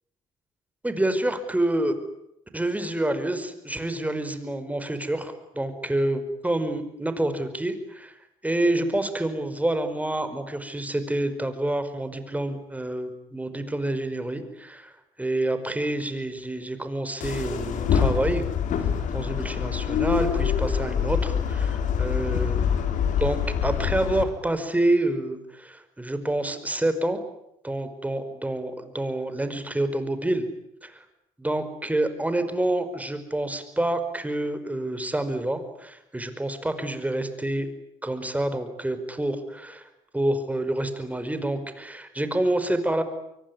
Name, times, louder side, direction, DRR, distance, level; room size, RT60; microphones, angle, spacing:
voice 1, 0.8-2.0 2.5-8.1 8.4-14.9 15.2-18.5 19.1-22.6 23.2-27.2 27.6-30.5 30.8-31.0 31.4-37.7 38.0-39.9 40.1-43.0, right 1 dB, 10° right, 10 dB, 5.2 m, -27 dB
sound 1, 17.2-24.2, left 8 dB, 65° left, 4.4 m, -25 dB
25.0 x 23.5 x 9.8 m, 0.82 s
hypercardioid pair, 60°, 14 cm